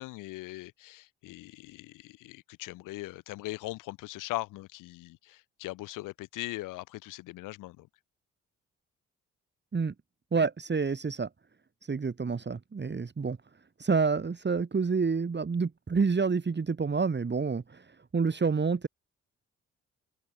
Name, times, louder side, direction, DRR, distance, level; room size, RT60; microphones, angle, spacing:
voice 1, 0.0-7.9, left 19 dB, 80° left, 4.4 m, -40 dB
voice 2, 10.3-11.3 11.8-13.4 13.8-17.9 18.1-18.9, right 5 dB, 35° right, 2.4 m, -28 dB
open air
hypercardioid pair, 45°, 31 cm